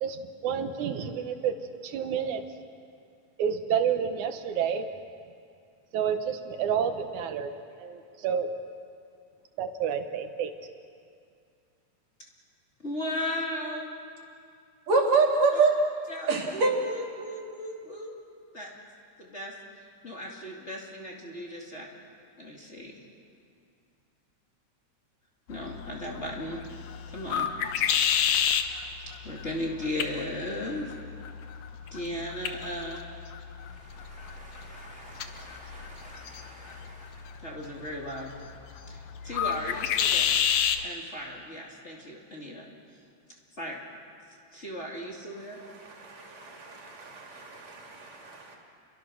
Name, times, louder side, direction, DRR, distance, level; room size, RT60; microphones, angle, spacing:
voice 1, 0.0-1.5 1.8-2.4 3.4-4.9 5.9-7.5 7.8-8.5 9.6-10.5, right 8 dB, 85° right, 7 dB, 2.5 m, -29 dB
voice 2, 12.8-13.9 15.5-15.6 16.1-18.2 18.5-18.7 19.2-21.9 22.4-22.9 25.5-26.6 27.1-27.5 29.2-30.9 31.9-33.0 33.6-38.3 38.9-40.4 40.8-42.7 43.5-43.8 44.5-45.6, left 1 dB, 25° left, -2 dB, 2.5 m, -37 dB
voice 3, 14.9-15.8 16.3-16.7 45.6-46.0 46.8-48.6, right 4 dB, 60° right, 0 dB, 4.2 m, -26 dB
sound 1, 25.5-40.8, left 8 dB, 70° left, 2.2 m, -31 dB
29.5 x 22.5 x 6.4 m, 2.4 s
omnidirectional pair, 3.4 m